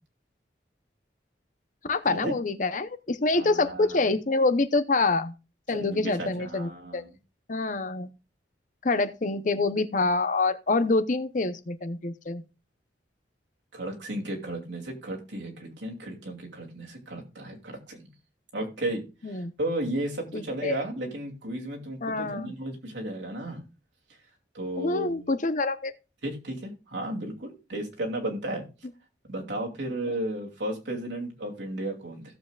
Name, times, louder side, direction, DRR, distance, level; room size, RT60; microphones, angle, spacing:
voice 1, 1.9-5.3 5.7-7.0 7.5-8.1 8.8-12.4 19.2-19.5 20.3-20.7 22.0-22.5 24.8-25.9 30.1-30.2, left 3 dB, 45° left, 0.7 m, -26 dB
voice 2, 3.3-4.1 5.7-7.1 13.7-18.1 18.5-23.6 24.5-25.3 26.2-28.6 29.3-32.2, right 1 dB, 80° right, 2.6 m, -34 dB
16.5 x 7.3 x 2.4 m
head